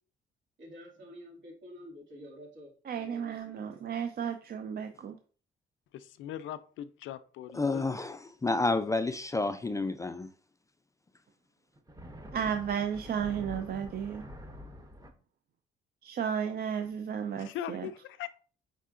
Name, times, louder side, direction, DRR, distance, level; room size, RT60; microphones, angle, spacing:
voice 1, 0.6-4.1, equal, 75° right, 2.3 m, -50 dB
voice 2, 2.9-5.2 12.3-14.2 16.0-17.9, right 8 dB, 50° right, 0.5 m, -33 dB
voice 3, 5.9-7.8 17.4-18.3, left 11 dB, 80° left, 0.4 m, -40 dB
voice 4, 7.5-10.3, left 3 dB, 15° left, 0.3 m, -30 dB
sound 1, 11.7-15.1, equal, 15° right, 0.8 m, -46 dB
5.5 x 3.5 x 2.5 m
cardioid pair, 90°, 20 cm